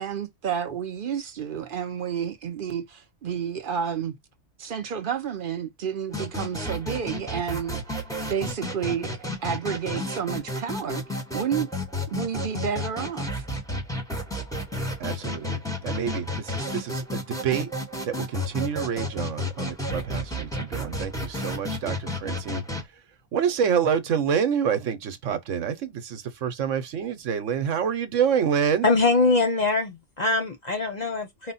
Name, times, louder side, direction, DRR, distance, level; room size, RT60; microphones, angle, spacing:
voice 1, 0.0-4.1 4.6-7.8 8.3-11.0 11.3-11.7 12.1-13.3, right 7 dB, 50° right, 0.8 m, -30 dB
sound 1, 6.1-22.8, left 1 dB, 5° left, 0.9 m, -32 dB
voice 2, 15.0-17.7 18.1-22.6 23.3-28.9, right 7 dB, 85° right, 1.2 m, -27 dB
voice 3, 28.8-31.5, left 3 dB, 45° left, 0.7 m, -23 dB
4.9 x 2.1 x 4.0 m
omnidirectional pair, 1.3 m